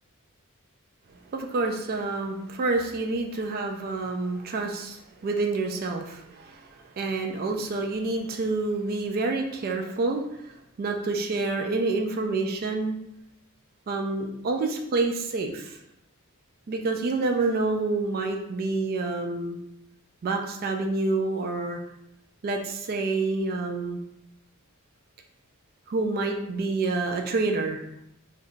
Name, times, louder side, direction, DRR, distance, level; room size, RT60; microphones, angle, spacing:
voice 1, 1.3-13.0 13.9-15.8 16.7-19.6 20.2-21.8 22.4-24.0 25.9-27.8, right 3 dB, 45° right, 3 dB, 0.3 m, -28 dB
2.6 x 2.3 x 3.6 m, 0.78 s
head